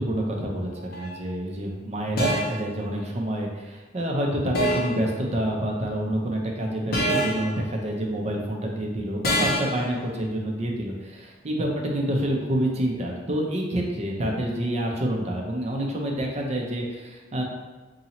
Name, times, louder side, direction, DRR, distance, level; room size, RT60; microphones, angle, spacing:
voice 1, 0.0-17.4, right 1 dB, 35° right, 0 dB, 0.5 m, -28 dB
sound 1, 0.9-1.2 2.2-2.7 4.5-5.0 6.9-7.5 9.2-9.8, equal, 55° left, 0.6 m, -25 dB
2.8 x 2.7 x 4.1 m, 1.2 s
head